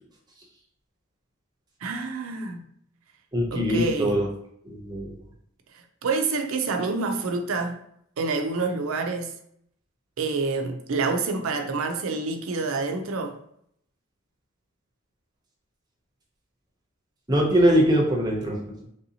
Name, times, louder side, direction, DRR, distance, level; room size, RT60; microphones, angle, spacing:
voice 1, 1.8-2.7 3.5-4.2 5.7-7.8 8.2-9.3 10.2-13.4, right 3 dB, 70° right, 0.5 m, -27 dB
voice 2, 3.3-4.2 4.7-5.1 17.3-18.6, equal, 20° right, 0.6 m, -21 dB
3.3 x 2.7 x 2.8 m
head